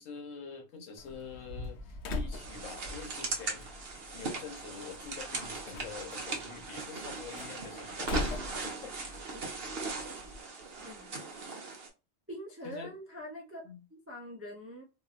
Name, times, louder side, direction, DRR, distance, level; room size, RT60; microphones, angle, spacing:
voice 1, 0.0-3.6 4.1-8.9 12.6-13.0 13.6-13.8, left 5 dB, 85° left, 1.2 m, -46 dB
Slam, 1.0-10.4, left 2 dB, 65° left, 0.9 m, -43 dB
sound 1, 1.2-3.2 3.6-4.4 4.8-5.7 6.1-6.2 6.9-7.0 7.2-7.6 8.0-8.3 8.8-8.9, left 1 dB, 40° left, 1.1 m, -48 dB
sound 2, 2.3-11.9, right 3 dB, 55° right, 1.0 m, -39 dB
voice 2, 10.8-11.2 12.3-13.7 14.1-14.8, equal, 20° right, 0.4 m, -44 dB
2.9 x 2.6 x 2.4 m
omnidirectional pair, 1.3 m